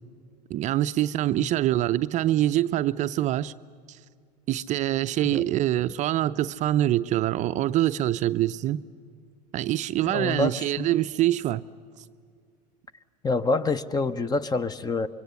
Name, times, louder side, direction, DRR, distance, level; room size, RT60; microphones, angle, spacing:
voice 1, 0.5-3.5 3.9-4.0 4.5-8.8 9.5-11.6, right 13 dB, 35° right, 0.5 m, -25 dB
voice 2, 10.1-11.0 13.2-15.1, left 3 dB, 20° left, 0.8 m, -27 dB
25.5 x 23.5 x 7.1 m
hypercardioid pair, 90°, 20 cm